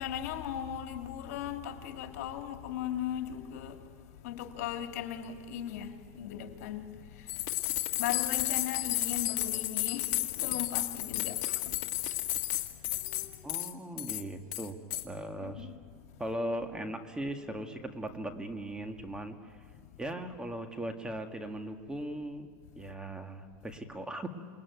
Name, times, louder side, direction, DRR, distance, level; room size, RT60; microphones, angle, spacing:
voice 1, 0.0-12.6 12.9-13.6 15.4-15.8 19.8-20.0, left 10 dB, 75° left, 2.7 m, -39 dB
sound 1, 7.3-13.7 14.0-14.2 14.5-15.0, left 15 dB, 50° left, 1.7 m, -32 dB
voice 2, 13.4-14.8 15.0-15.7 16.2-19.6 20.0-22.5 22.8-24.3, right 1 dB, 10° right, 1.9 m, -38 dB
28.0 x 20.0 x 9.5 m
supercardioid pair, 130°, 8 cm